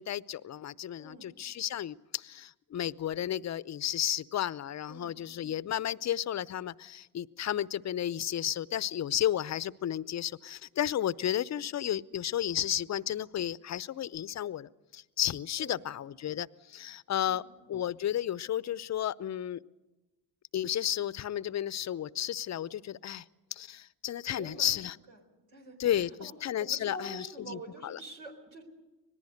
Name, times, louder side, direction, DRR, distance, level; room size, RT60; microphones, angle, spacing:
voice 1, 0.0-17.4 17.7-19.6 20.5-23.2 23.5-25.0 25.8-28.0, left 11 dB, 35° left, 19 dB, 0.7 m, -33 dB
voice 2, 1.0-1.3 4.9-5.2 15.6-15.9 17.2-17.4 24.3-24.8 25.1-25.2 25.5-25.8 26.2-26.3 26.6-28.6, right 2 dB, 85° right, 1 dB, 4.2 m, -46 dB
25.5 x 19.0 x 6.6 m, 1.1 s
hypercardioid pair, 60°, 49 cm